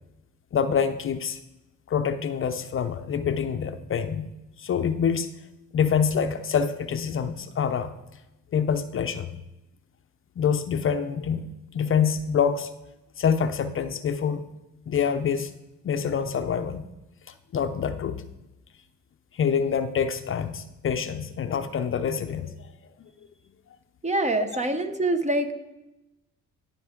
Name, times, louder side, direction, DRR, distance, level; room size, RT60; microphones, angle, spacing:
voice 1, 0.5-1.4 1.9-4.3 4.6-5.3 5.7-7.9 8.5-9.4 10.4-11.5 11.7-12.7 13.2-14.4 14.9-15.5 15.8-16.9 17.5-18.2 19.3-22.6 23.0-23.1, left 7 dB, 45° left, 9 dB, 0.5 m, -26 dB
voice 2, 24.0-25.5, right 2 dB, 25° right, 8 dB, 0.8 m, -25 dB
14.0 x 5.3 x 3.7 m, 0.96 s
cardioid pair, 90°, 30 cm